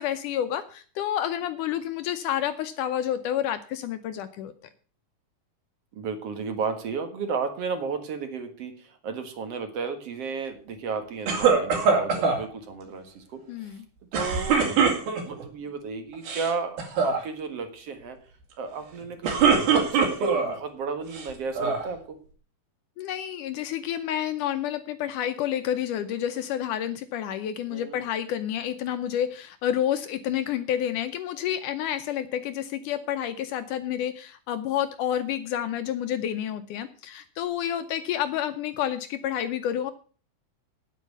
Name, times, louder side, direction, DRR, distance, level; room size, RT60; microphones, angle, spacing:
voice 1, 0.0-4.5 13.5-13.8 23.0-39.9, left 10 dB, 75° left, 10 dB, 2.0 m, -29 dB
voice 2, 5.9-13.4 14.1-14.7 15.2-18.2 18.6-22.2 27.7-28.0, right 5 dB, 50° right, 7 dB, 2.2 m, -33 dB
sound 1, 11.3-12.4 14.1-15.4 16.1-16.5 16.8-17.2 19.0-20.5 21.1-21.9, right 5 dB, 80° right, 4.5 m, -22 dB
9.3 x 8.8 x 8.2 m, 0.42 s
omnidirectional pair, 4.2 m